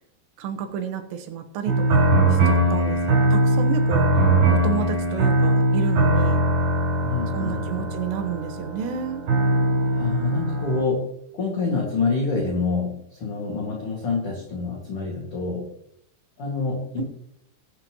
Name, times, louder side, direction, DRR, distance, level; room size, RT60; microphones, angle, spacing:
voice 1, 0.4-4.1 4.6-6.4 7.3-9.2 17.0-17.1, right 8 dB, 90° right, 6 dB, 3.4 m, -31 dB
sound 1, 1.7-10.8, right 1 dB, 70° right, 6.6 m, -21 dB
voice 2, 7.0-7.9 10.0-11.1 11.3-15.7 16.4-17.0, left 4 dB, 40° left, -2 dB, 2.4 m, -27 dB
21.0 x 7.7 x 3.0 m, 0.70 s
omnidirectional pair, 4.8 m